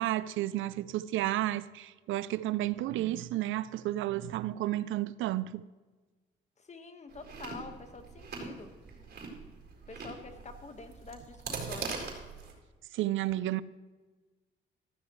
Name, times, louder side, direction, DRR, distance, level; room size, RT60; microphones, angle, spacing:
voice 1, 0.0-5.6 11.5-11.7 12.9-13.6, right 15 dB, 80° right, 0.5 m, -32 dB
voice 2, 6.6-8.7 9.9-12.1, left 4 dB, 35° left, 1.5 m, -47 dB
Chewing mastication, 7.1-12.5, right 4 dB, 55° right, 4.3 m, -42 dB
15.0 x 14.0 x 3.2 m
cardioid pair, 90°, 20 cm